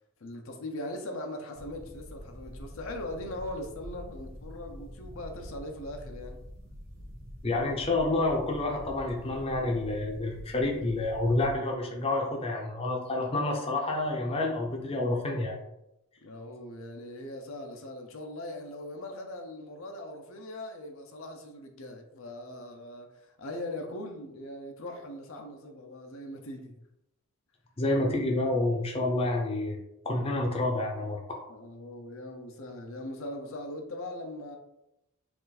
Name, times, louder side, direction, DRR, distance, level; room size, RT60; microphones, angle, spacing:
voice 1, 0.2-6.4 16.2-26.7 31.5-34.6, left 1 dB, 75° left, 3 dB, 0.7 m, -40 dB
sound 1, 1.6-11.5, equal, 70° right, 1.3 m, -46 dB
voice 2, 7.4-15.6 27.8-29.8 30.0-31.2, left 2 dB, 30° left, 0 dB, 0.6 m, -29 dB
4.4 x 2.5 x 4.0 m, 0.85 s
head